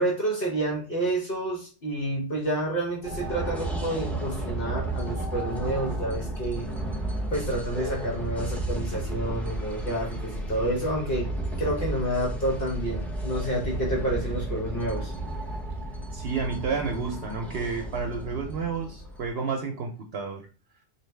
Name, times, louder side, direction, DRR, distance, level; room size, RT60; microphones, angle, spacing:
voice 1, 0.0-6.7 7.3-11.3 11.6-15.1, right 1 dB, 55° left, -3 dB, 1.2 m, -29 dB
sound 1, 3.0-19.3, right 1 dB, ahead, 0.7 m, -33 dB
voice 2, 16.1-20.4, right 5 dB, 65° right, 3 dB, 0.8 m, -31 dB
3.9 x 2.8 x 3.2 m, 0.36 s
omnidirectional pair, 1.1 m